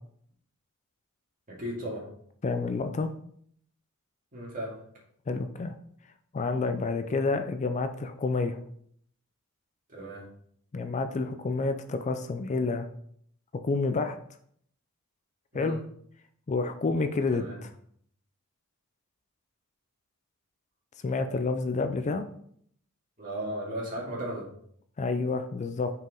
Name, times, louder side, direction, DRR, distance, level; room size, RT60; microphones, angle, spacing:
voice 1, 1.5-2.1 4.3-4.8 9.9-10.2 15.5-15.8 17.3-17.6 23.2-24.5, right 1 dB, 40° right, -4 dB, 2.3 m, -35 dB
voice 2, 2.4-3.1 5.3-5.7 6.3-8.6 10.7-12.9 13.6-14.2 15.5-15.8 16.5-17.4 21.0-22.3 25.0-25.9, left 3 dB, 35° left, 8 dB, 0.4 m, -29 dB
6.1 x 4.7 x 3.7 m, 0.65 s
head